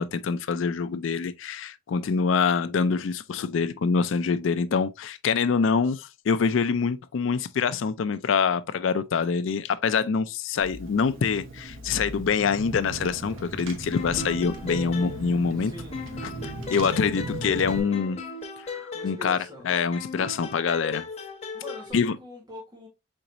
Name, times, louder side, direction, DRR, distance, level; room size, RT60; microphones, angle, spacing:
voice 1, 0.0-15.7 16.4-18.2 18.6-19.4 19.6-21.1 21.9-22.2, left 5 dB, 75° left, 0.4 m, -25 dB
Car / Engine, 10.6-17.8, right 2 dB, 80° right, 1.0 m, -38 dB
sound 1, 13.9-15.6 15.9-19.5 19.9-21.9, left 4 dB, 35° left, 1.0 m, -37 dB
voice 2, 15.6-16.0 18.9-19.7 21.5-22.9, left 1 dB, 20° right, 1.4 m, -43 dB
4.6 x 3.9 x 2.6 m
head